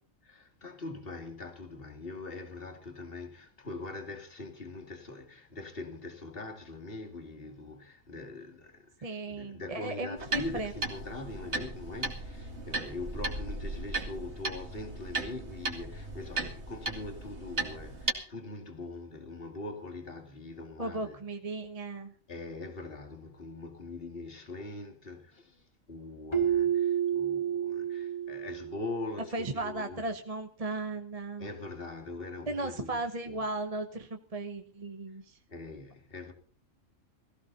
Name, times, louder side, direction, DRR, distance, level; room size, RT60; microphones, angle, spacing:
voice 1, 0.2-21.2 22.3-30.0 31.4-33.0 33.3-33.4 35.5-36.3, left 2 dB, 45° left, 2.7 m, -42 dB
voice 2, 9.0-10.7 20.8-22.1 29.3-31.5 32.5-35.4, right 2 dB, 30° right, 1.1 m, -36 dB
sound 1, 10.2-18.1, right 2 dB, 55° right, 2.6 m, -36 dB
Keyboard (musical), 26.3-29.1, right 9 dB, 20° left, 1.7 m, -30 dB
18.0 x 15.5 x 4.1 m
omnidirectional pair, 1.4 m